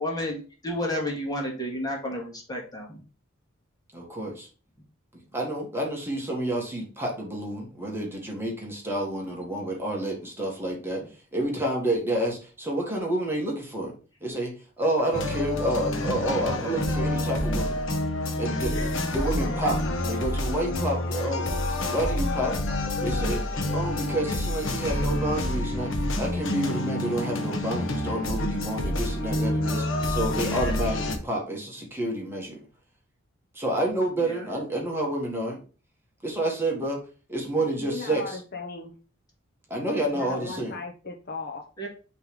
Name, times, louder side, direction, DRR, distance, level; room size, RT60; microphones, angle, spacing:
voice 1, 0.0-3.0 34.2-34.4 41.8-41.9, left 1 dB, 20° left, -1 dB, 2.0 m, -31 dB
voice 2, 3.9-4.5 5.3-11.0 11.3-13.9 14.2-14.5 14.8-17.8 18.4-21.6 21.9-22.5 23.0-23.4 23.7-25.9 26.2-32.6 33.5-35.6 36.2-37.0 37.3-38.4 39.7-40.7, right 1 dB, 10° right, -2 dB, 1.7 m, -29 dB
sound 1, 15.1-31.2, left 1 dB, 70° left, 1.1 m, -28 dB
voice 3, 37.5-38.9 40.1-41.6, left 4 dB, 50° left, 1 dB, 1.0 m, -37 dB
6.0 x 3.4 x 5.2 m, 0.36 s
head